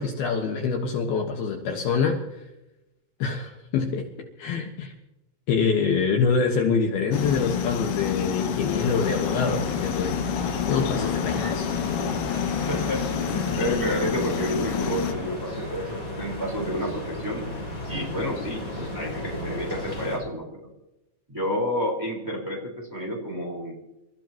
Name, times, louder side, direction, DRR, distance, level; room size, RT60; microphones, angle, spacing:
voice 1, 0.0-2.2 3.2-4.1 4.4-4.9 5.5-10.2 10.7-11.7, left 5 dB, 65° left, 2 dB, 3.1 m, -25 dB
sound 1, 7.1-15.1, left 8 dB, 85° left, 3.7 m, -28 dB
sound 2, 8.7-20.2, left 1 dB, 20° left, 5.0 m, -34 dB
voice 2, 12.7-17.4 17.9-20.7 21.3-23.8, equal, 5° right, 0 dB, 3.8 m, -30 dB
28.0 x 14.5 x 3.0 m, 0.93 s
omnidirectional pair, 5.3 m